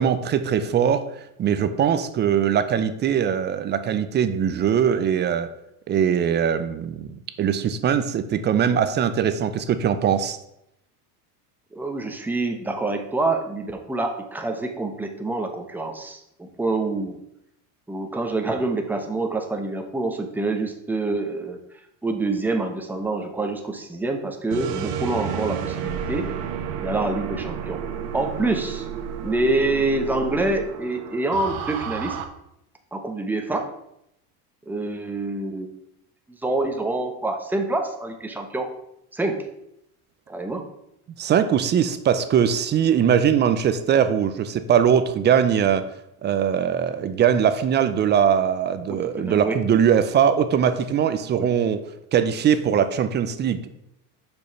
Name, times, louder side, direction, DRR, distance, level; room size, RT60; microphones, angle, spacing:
voice 1, 0.0-5.5 5.9-10.4 41.2-45.9 46.2-51.8 52.1-53.7, right 8 dB, 25° right, 11 dB, 0.5 m, -21 dB
voice 2, 11.7-17.2 17.9-21.6 22.0-26.3 26.8-27.8 28.1-28.9 29.2-32.2 32.9-33.7 34.7-35.8 36.3-38.7 39.1-39.4 40.3-40.6 48.9-49.6 51.3-51.5, right 2 dB, 5° right, 4 dB, 0.9 m, -26 dB
sound 1, 24.5-32.2, right 8 dB, 80° right, 1.2 m, -31 dB
6.8 x 5.3 x 5.8 m, 0.81 s
supercardioid pair, 130°, 46 cm